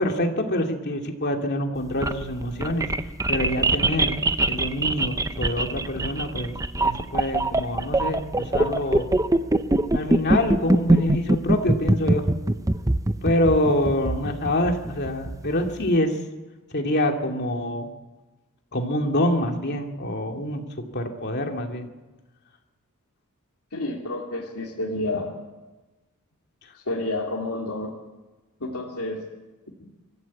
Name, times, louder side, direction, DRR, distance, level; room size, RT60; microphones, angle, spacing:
voice 1, 0.0-2.9 3.3-4.2 4.5-9.1 9.9-12.2 13.2-16.2 16.7-17.9 18.7-21.9, left 1 dB, 50° left, 3 dB, 2.6 m, -26 dB
sound 1, 1.8-15.9, right 2 dB, 15° right, 0.7 m, -23 dB
voice 2, 23.7-25.3 26.9-27.9 28.6-29.2 29.8-29.9, left 2 dB, 85° left, -3 dB, 2.8 m, -29 dB
24.5 x 14.5 x 8.5 m, 1.2 s
head